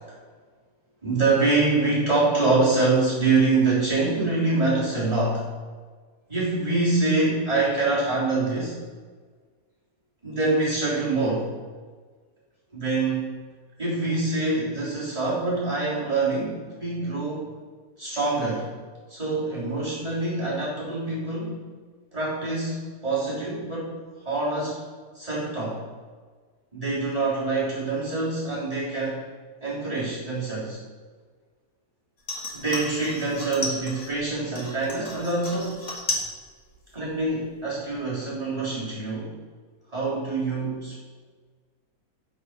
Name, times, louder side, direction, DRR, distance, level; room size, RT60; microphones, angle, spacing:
voice 1, 1.0-5.4 6.3-8.8 10.2-11.5 12.7-13.3 13.8-17.5 18.0-18.7 19.1-21.6 22.1-23.9 24.3-24.8 25.1-25.8 26.7-29.2 29.6-30.8 32.5-35.8 36.9-39.3 39.9-41.0, right 3 dB, 20° right, -9 dB, 3.4 m, -25 dB
sound 1, 32.2-34.2 34.6-36.3 36.6-37.2 37.6-37.7, left 2 dB, 65° left, 2.5 m, -34 dB
9.9 x 5.2 x 6.5 m, 1.5 s
omnidirectional pair, 1.6 m